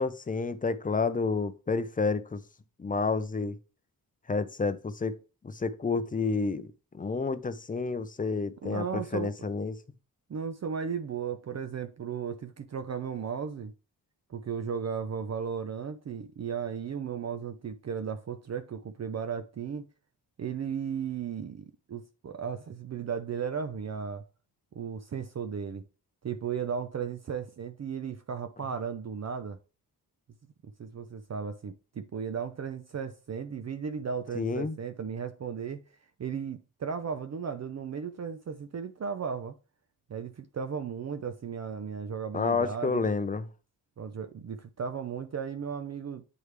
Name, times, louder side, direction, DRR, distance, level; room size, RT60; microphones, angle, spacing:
voice 1, 0.0-2.4 2.8-3.6 4.3-5.2 5.4-6.7 6.9-9.8 34.4-34.8 42.3-43.5, left 4 dB, 20° left, 0.5 m, -30 dB
voice 2, 8.6-9.3 10.3-13.7 14.3-19.9 20.4-24.2 24.7-25.8 26.2-29.6 30.8-35.8 36.2-39.5 40.1-43.1 44.0-46.3, right 6 dB, 45° right, 0.5 m, -35 dB
9.4 x 3.2 x 3.3 m
wide cardioid pair, 110°, 38 cm